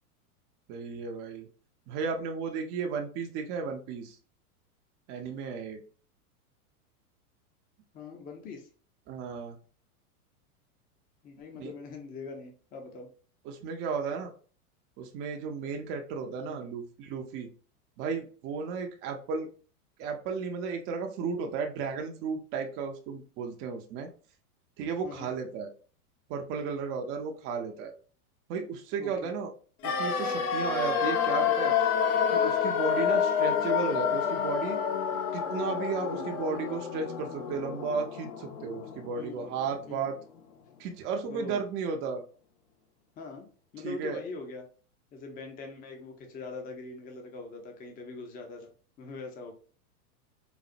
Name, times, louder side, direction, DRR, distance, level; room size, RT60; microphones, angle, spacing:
voice 1, 0.7-1.5 1.9-4.2 5.1-5.8 9.1-9.6 11.6-11.7 13.4-14.3 15.0-17.5 18.0-19.5 20.0-24.1 24.8-25.7 26.3-27.9 28.5-29.5 29.8-31.8 32.3-34.8 35.3-40.2 40.8-42.2 43.8-44.2, right 5 dB, 30° right, 3 dB, 0.4 m, -34 dB
voice 2, 7.9-8.7 11.2-13.1 16.4-16.6 25.0-25.3 29.0-29.3 36.0-36.2 39.1-39.5 39.9-40.1 41.3-41.6 43.2-43.5 43.7-44.7 45.1-48.7 49.0-49.5, left 3 dB, 20° left, 3 dB, 0.5 m, -42 dB
sound 1, 29.8-39.8 40.0-40.1, left 7 dB, 75° left, 0.8 m, -29 dB
4.0 x 2.0 x 2.5 m, 0.39 s
hypercardioid pair, 120°, 45 cm